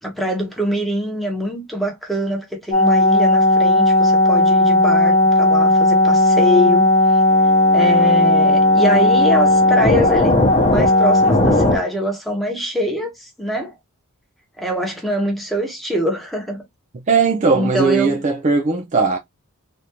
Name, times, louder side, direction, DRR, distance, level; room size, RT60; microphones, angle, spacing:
voice 1, 0.0-7.2 7.7-10.4 10.7-13.7 14.6-16.6 17.5-18.2, equal, ahead, 1.0 m, -23 dB
sound 1, 2.7-11.8, left 2 dB, 30° left, 0.9 m, -14 dB
voice 2, 17.1-19.2, right 4 dB, 35° right, 0.4 m, -18 dB
3.4 x 2.6 x 2.8 m
head